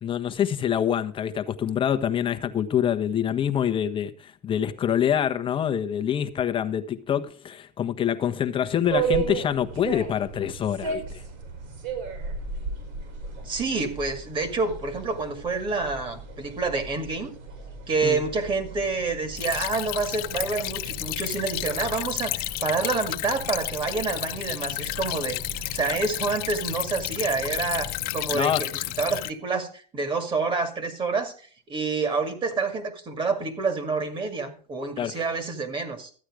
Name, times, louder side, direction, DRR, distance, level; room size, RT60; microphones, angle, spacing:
voice 1, 0.0-11.2 18.0-18.2 28.3-28.6 35.0-35.1, left 9 dB, 25° left, 1.1 m, -26 dB
sound 1, 8.8-28.3, right 5 dB, 55° right, 4.9 m, -36 dB
voice 2, 13.4-17.3 17.9-25.4 25.7-28.7 29.0-36.1, right 4 dB, 25° right, 2.2 m, -28 dB
Stream / Trickle dribble, 19.4-29.3, left 20 dB, 45° left, 0.6 m, -32 dB
13.5 x 8.9 x 5.0 m
supercardioid pair, 125°, 21 cm